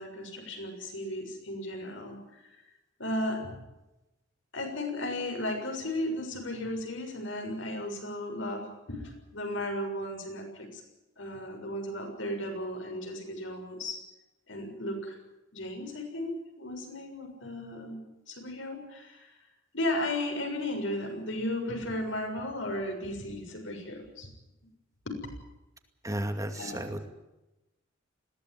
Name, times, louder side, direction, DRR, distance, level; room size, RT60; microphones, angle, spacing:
voice 1, 0.0-2.6 3.0-3.5 4.5-10.8 11.2-14.0 14.5-15.2 15.5-19.3 19.7-24.3 25.0-25.2 26.5-26.8, left 1 dB, 75° left, 3 dB, 6.8 m, -35 dB
voice 2, 26.0-27.0, right 1 dB, 15° right, 6 dB, 2.3 m, -33 dB
21.5 x 17.0 x 9.5 m, 0.98 s
head